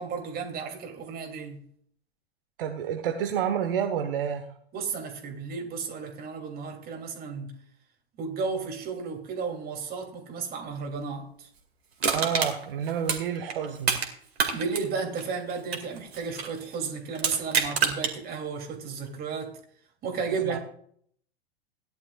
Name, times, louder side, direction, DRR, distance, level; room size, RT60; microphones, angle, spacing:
voice 1, 0.0-1.6 4.7-7.5 8.2-11.5 14.5-19.6 20.0-20.6, right 5 dB, 30° right, 2.9 m, -33 dB
voice 2, 2.6-4.5 12.1-14.0 20.5-20.6, right 8 dB, 60° right, 1.3 m, -29 dB
Crushing, 12.0-14.1 14.4-16.6 17.1-18.1 18.6-18.7, right 6 dB, 75° right, 2.4 m, -27 dB
17.5 x 11.0 x 2.4 m
figure-of-eight pair, 95°, 31 cm